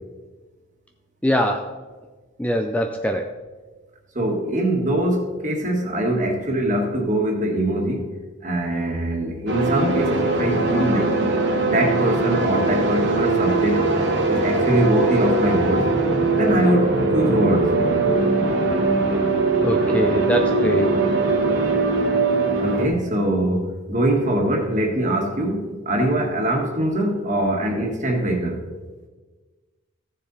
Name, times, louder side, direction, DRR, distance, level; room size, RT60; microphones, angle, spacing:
voice 1, 1.2-1.7 2.4-3.3 19.6-21.0, equal, 5° left, 4 dB, 0.4 m, -22 dB
voice 2, 4.1-8.1 8.4-11.2 11.7-13.8 14.3-15.9 16.3-17.7 22.6-28.6, right 1 dB, 35° right, 1 dB, 1.7 m, -22 dB
sound 1, 9.5-22.9, right 3 dB, 55° right, 1.6 m, -21 dB
15.0 x 6.8 x 4.1 m, 1.3 s
head